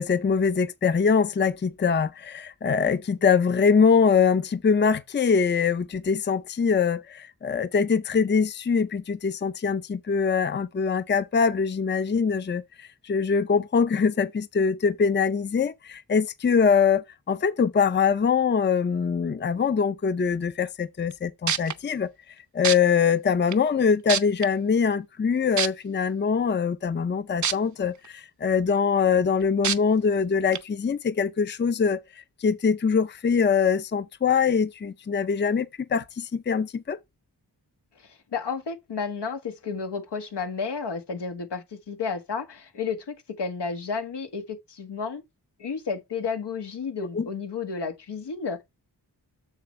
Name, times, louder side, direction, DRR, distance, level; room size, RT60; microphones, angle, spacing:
voice 1, 0.0-22.1 22.5-32.0 32.4-37.0 47.1-47.3, left 6 dB, 30° left, 0.5 m, -23 dB
sound 1, 21.1-21.2 21.5-21.7 22.6-22.8 23.5-23.6 24.1-24.5 25.6-25.7 27.4-27.5 28.0-28.1 29.6-29.8 30.5-30.6, right 8 dB, 50° right, 0.6 m, -24 dB
voice 2, 38.0-45.2 45.6-48.6, left 5 dB, 90° left, 1.6 m, -32 dB
7.3 x 6.8 x 3.2 m
wide cardioid pair, 90°, 40 cm